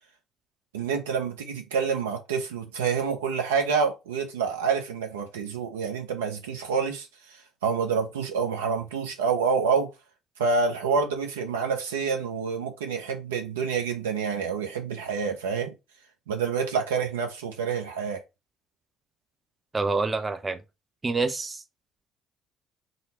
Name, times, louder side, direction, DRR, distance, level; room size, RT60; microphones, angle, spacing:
voice 1, 0.7-9.9 10.4-15.7 16.3-18.2, right 5 dB, 85° right, 0.7 m, -27 dB
voice 2, 19.7-20.6 21.0-21.6, right 3 dB, 30° right, 0.6 m, -27 dB
4.0 x 2.2 x 4.2 m
hypercardioid pair, 55°, 0 cm